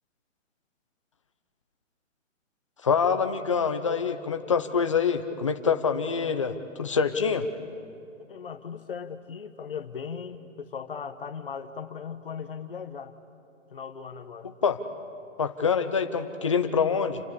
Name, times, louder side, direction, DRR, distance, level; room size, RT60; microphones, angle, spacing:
voice 1, 2.8-7.5 14.6-14.8 15.4-17.2, left 6 dB, 25° left, 8 dB, 0.9 m, -25 dB
voice 2, 8.3-13.1 13.7-14.5, left 6 dB, 45° left, 10 dB, 1.4 m, -38 dB
29.5 x 26.5 x 7.0 m, 2.5 s
hypercardioid pair, 175°, 39 cm